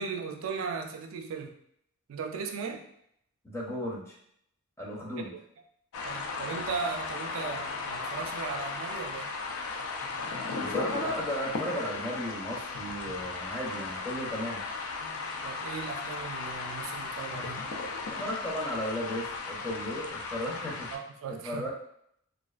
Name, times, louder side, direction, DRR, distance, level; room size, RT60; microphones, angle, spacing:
voice 1, 0.0-1.5 2.1-2.8 5.2-5.4 6.0-9.3 15.4-17.7 20.9-21.7, right 5 dB, 80° right, 5 dB, 0.3 m, -37 dB
voice 2, 3.4-4.1 4.8-5.3 10.6-14.6 18.1-20.9 21.3-21.7, equal, 10° left, -4 dB, 0.5 m, -35 dB
sound 1, 5.9-21.0, left 4 dB, 85° left, 0.4 m, -36 dB
2.3 x 2.3 x 2.3 m, 0.70 s
head